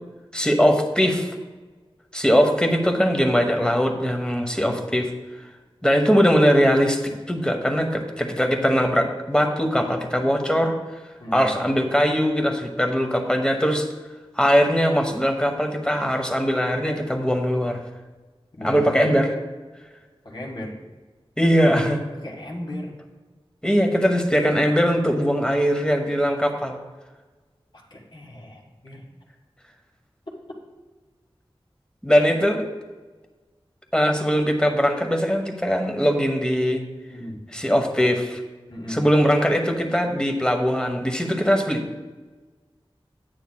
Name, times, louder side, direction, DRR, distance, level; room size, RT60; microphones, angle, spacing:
voice 1, 0.3-1.3 2.1-5.1 5.8-7.0 7.3-10.7 11.3-13.9 14.4-17.8 18.6-19.3 21.4-22.0 23.6-26.8 32.0-32.7 33.9-36.8 37.5-38.4 38.9-41.9, equal, 10° left, 3 dB, 1.1 m, -21 dB
voice 2, 11.2-11.5 18.6-19.0 20.3-20.7 22.2-22.9 27.9-29.1 37.1-37.5 38.7-39.0, left 1 dB, 50° left, -1 dB, 1.8 m, -36 dB
10.5 x 9.1 x 2.3 m, 1.3 s
wide cardioid pair, 60°, 10 cm